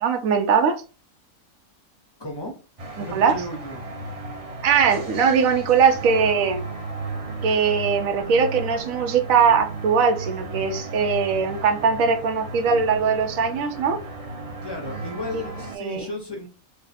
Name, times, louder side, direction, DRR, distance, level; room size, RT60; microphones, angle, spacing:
voice 1, 0.0-0.7 3.0-3.4 4.6-6.7 7.4-14.0 15.3-15.4 15.7-16.1, right 6 dB, 80° right, 5 dB, 1.1 m, -21 dB
voice 2, 2.2-2.6 3.0-3.8 14.6-16.5, left 1 dB, 30° left, 1 dB, 0.5 m, -34 dB
sound 1, 2.8-15.8, right 2 dB, 35° right, 0.6 m, -34 dB
3.2 x 2.1 x 4.0 m, 0.34 s
omnidirectional pair, 1.5 m